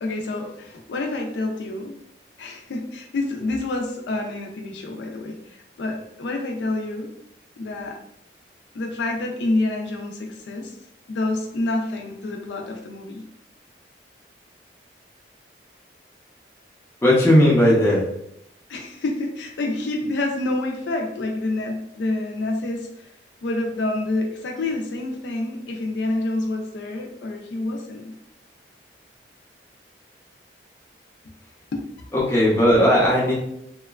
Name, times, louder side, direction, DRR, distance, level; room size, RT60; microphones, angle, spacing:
voice 1, 0.0-1.9 2.4-5.4 5.8-7.1 7.6-8.0 8.7-10.7 11.1-13.2 18.7-23.1 23.4-28.2 31.7-31.8, left 2 dB, 85° left, 2 dB, 0.4 m, -28 dB
voice 2, 17.0-18.1 32.1-33.4, equal, 15° left, -6 dB, 0.6 m, -16 dB
2.9 x 2.1 x 2.3 m, 0.77 s
head